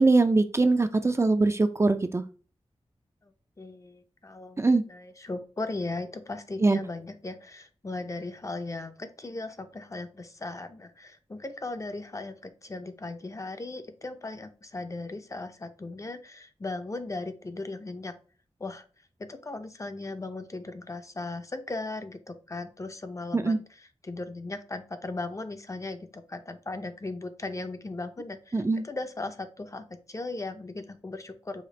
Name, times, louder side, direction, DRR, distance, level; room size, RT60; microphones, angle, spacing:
voice 1, 0.0-2.2 4.6-4.8 6.6-6.8 23.3-23.6 28.5-28.8, right 3 dB, 25° right, 8 dB, 0.4 m, -22 dB
voice 2, 3.6-4.6 4.9-18.1 18.6-18.8 19.3-23.6 24.0-31.6, left 2 dB, 30° left, 8 dB, 0.5 m, -37 dB
5.0 x 2.4 x 3.9 m, 0.39 s
wide cardioid pair, 85°, 11 cm